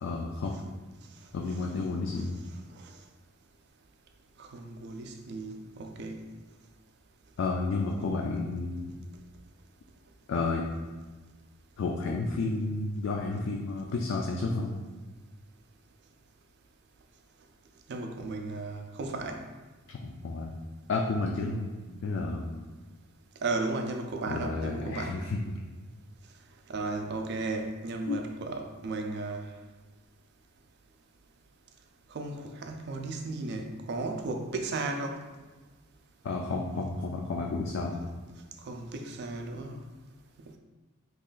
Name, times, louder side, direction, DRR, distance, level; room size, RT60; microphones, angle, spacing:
voice 1, 0.0-0.5 1.3-2.4 7.4-8.9 10.3-10.6 11.8-14.8 19.9-20.5 20.9-21.7 22.0-22.5 24.3-25.4 28.1-28.2 36.2-38.1, left 3 dB, 65° left, 0 dB, 0.3 m, -31 dB
voice 2, 4.4-6.2 17.9-19.4 23.4-25.2 26.7-29.5 32.1-35.2 38.6-39.8 40.4-40.6, right 3 dB, 55° right, 4 dB, 0.4 m, -35 dB
3.0 x 2.4 x 3.7 m, 1.3 s
head